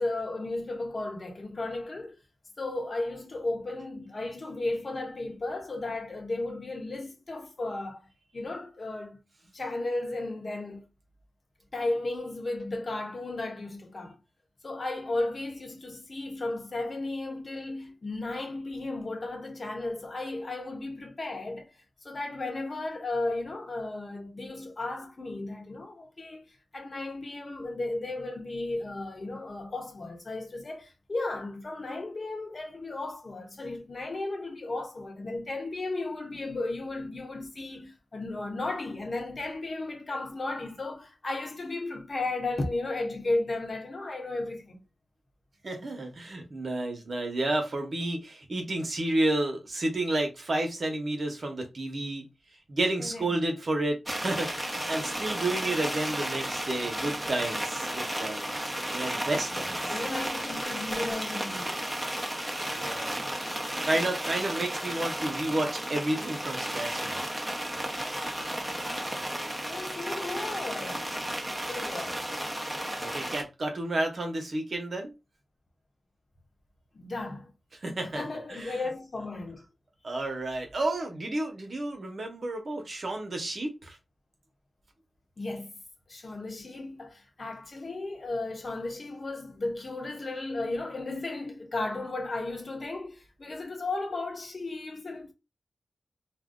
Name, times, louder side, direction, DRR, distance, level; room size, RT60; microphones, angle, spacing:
voice 1, 0.0-2.2 2.6-9.2 9.5-10.8 11.7-14.2 14.6-21.7 22.0-26.5 26.7-44.8 53.0-53.3 59.4-61.7 69.6-71.1 71.7-72.2 76.9-77.5 78.0-79.6 85.4-85.7 86.1-95.3, left 2 dB, 50° left, 0.9 m, -34 dB
voice 2, 45.6-52.2 52.7-59.7 62.7-63.2 63.8-67.2 72.0-72.1 73.0-75.1 77.8-78.2 78.5-78.8 80.0-84.0, right 2 dB, 60° right, 0.9 m, -31 dB
sound 1, 54.1-73.4, right 1 dB, 5° right, 0.9 m, -33 dB
2.6 x 2.2 x 3.6 m
cardioid pair, 50°, 0 cm